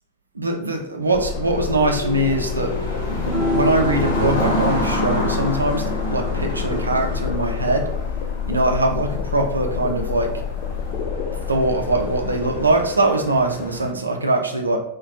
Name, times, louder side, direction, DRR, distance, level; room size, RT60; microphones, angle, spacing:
voice 1, 0.4-2.7 3.0-7.9 8.5-10.3 11.5-14.8, right 2 dB, 80° right, 3 dB, 0.4 m, -22 dB
sound 1, 1.1-13.9, equal, 65° left, 0.7 m, -30 dB
sound 2, 1.1-13.1, left 7 dB, 45° left, 0.3 m, -28 dB
sound 3, 3.2-9.7, left 1 dB, 5° right, 0.7 m, -30 dB
2.5 x 2.2 x 2.4 m, 0.76 s
figure-of-eight pair, 90°, 0 cm